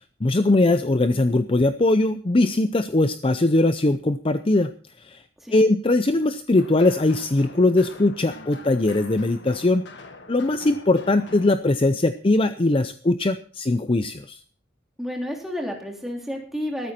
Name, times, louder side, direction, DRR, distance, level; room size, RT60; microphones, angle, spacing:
voice 1, 0.2-4.7 5.0-5.2 5.5-9.8 10.3-14.4, left 2 dB, 30° left, 10 dB, 0.6 m, -20 dB
sound 1, 6.6-11.6, left 3 dB, 65° left, 1.7 m, -44 dB
voice 2, 15.0-16.9, equal, ahead, 0 dB, 3.6 m, -31 dB
14.0 x 13.5 x 4.4 m, 0.41 s
head